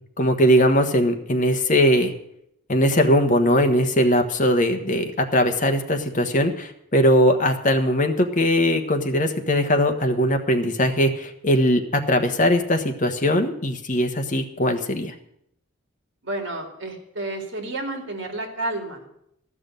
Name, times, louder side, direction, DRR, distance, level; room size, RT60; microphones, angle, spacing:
voice 1, 0.2-2.1 2.7-15.1, equal, 40° left, 5 dB, 1.2 m, -20 dB
voice 2, 16.2-19.0, right 2 dB, 60° right, 3 dB, 2.4 m, -30 dB
13.5 x 6.2 x 9.0 m, 0.75 s
head